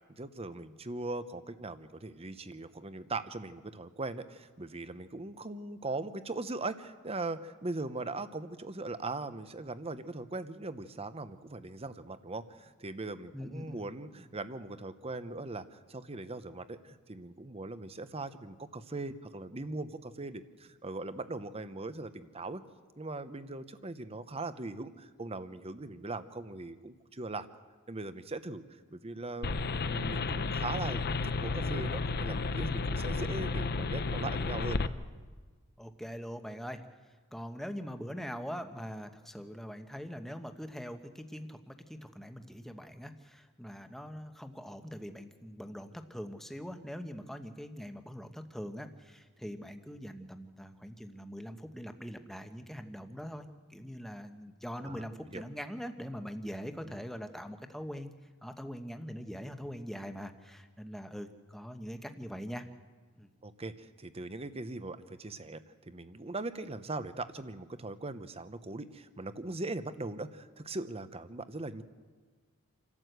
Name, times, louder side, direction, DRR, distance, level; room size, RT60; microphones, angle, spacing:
voice 1, 0.1-22.6 23.0-27.5 27.9-28.6 28.9-29.5 29.9-34.8 54.8-55.4 56.9-57.0 63.4-71.8, right 2 dB, 25° right, 12 dB, 0.9 m, -40 dB
voice 2, 13.3-13.8 35.8-36.9 37.3-53.4 53.7-58.1 58.4-62.7 63.2-63.3, equal, ahead, 7 dB, 1.1 m, -42 dB
sound 1, 29.4-34.9, left 3 dB, 45° left, 0.7 m, -32 dB
28.0 x 12.5 x 8.1 m, 1.5 s
head